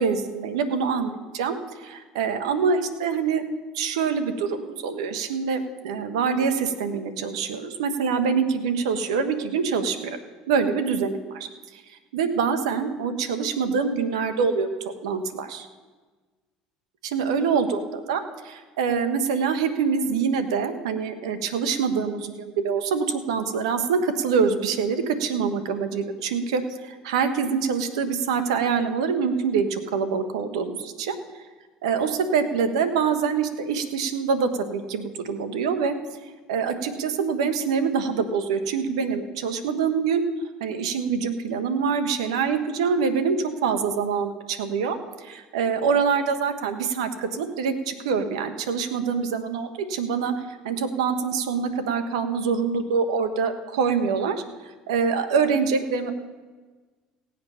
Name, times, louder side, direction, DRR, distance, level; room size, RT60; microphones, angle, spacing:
voice 1, 0.0-3.4 3.7-10.2 10.5-11.5 11.7-11.8 12.1-14.7 15.0-15.7 17.0-17.8 18.1-31.2 31.8-35.9 36.5-40.2 40.6-56.1, right 6 dB, 85° right, 9 dB, 1.1 m, -25 dB
17.5 x 7.9 x 5.6 m, 1.4 s
supercardioid pair, 80°, 3 cm